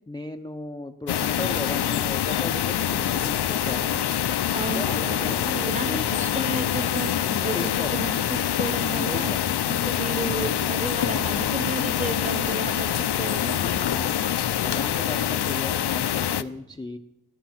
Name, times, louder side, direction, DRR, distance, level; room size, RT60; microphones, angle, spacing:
voice 1, 0.1-4.1 4.7-6.3 7.2-8.1 8.9-9.4 11.1-11.6 13.6-17.0, left 2 dB, 10° left, 6 dB, 0.5 m, -36 dB
sound 1, 1.1-16.4, left 10 dB, 75° left, 0.6 m, -25 dB
voice 2, 4.5-7.1 7.4-9.3 9.7-12.9 13.1-13.6, right 2 dB, 20° right, 11 dB, 0.9 m, -33 dB
15.0 x 13.0 x 5.8 m, 0.89 s
wide cardioid pair, 170°, 40 cm